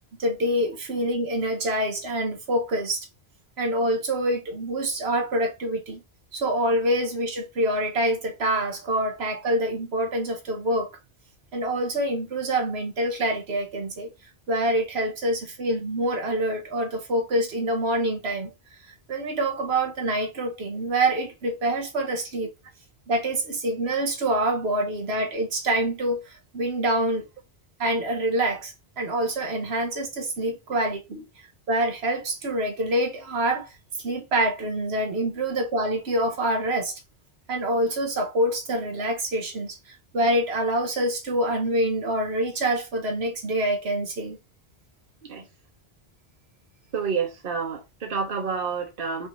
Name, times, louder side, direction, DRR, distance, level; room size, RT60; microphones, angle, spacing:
voice 1, 0.2-3.1 3.6-6.0 6.3-10.9 11.5-14.1 14.5-18.5 19.1-22.5 23.1-27.3 27.8-31.2 31.7-33.7 34.0-37.0 37.5-44.4, right 1 dB, 85° right, 1.3 m, -26 dB
voice 2, 46.9-49.3, right 5 dB, 60° right, 1.2 m, -29 dB
5.5 x 2.7 x 3.0 m
omnidirectional pair, 1.0 m